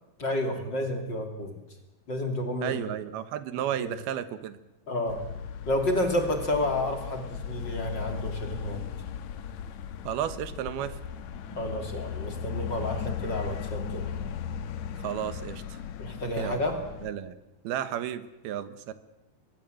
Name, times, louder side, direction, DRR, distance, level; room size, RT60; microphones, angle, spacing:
voice 1, 0.2-1.6 2.1-2.8 3.8-3.9 4.9-5.3 5.7-8.8 11.5-14.1 16.0-16.8, left 1 dB, 30° left, 5 dB, 3.0 m, -30 dB
voice 2, 2.6-4.6 10.0-11.0 15.0-15.8 16.4-16.6 17.0-17.4 17.6-18.9, right 10 dB, 75° right, 13 dB, 3.1 m, -33 dB
sound 1, 5.1-17.1, left 8 dB, 70° left, 1.8 m, -37 dB
24.0 x 22.0 x 7.8 m, 0.96 s
omnidirectional pair, 4.7 m